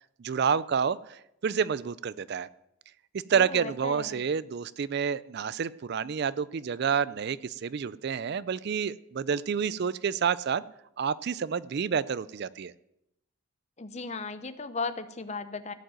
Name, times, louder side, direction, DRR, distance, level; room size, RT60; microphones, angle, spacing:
voice 1, 0.2-2.5 3.3-10.6 11.0-12.7, right 6 dB, 50° right, 18 dB, 0.4 m, -29 dB
voice 2, 3.3-4.2 13.8-15.7, left 4 dB, 30° left, 12 dB, 0.7 m, -36 dB
15.5 x 5.3 x 9.0 m, 0.80 s
head